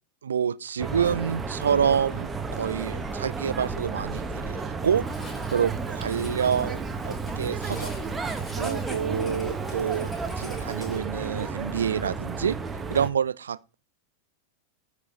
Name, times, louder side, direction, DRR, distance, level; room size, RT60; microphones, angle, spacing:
voice 1, 0.2-5.1 5.5-7.9 8.6-10.1 10.4-12.6 12.9-13.7, right 7 dB, 70° right, 0.4 m, -27 dB
sound 1, 0.8-13.1, right 4 dB, 15° right, 1.1 m, -32 dB
Writing, 5.0-11.0, left 2 dB, 15° left, 3.6 m, -45 dB
13.5 x 4.9 x 3.9 m
figure-of-eight pair, 90°, 0 cm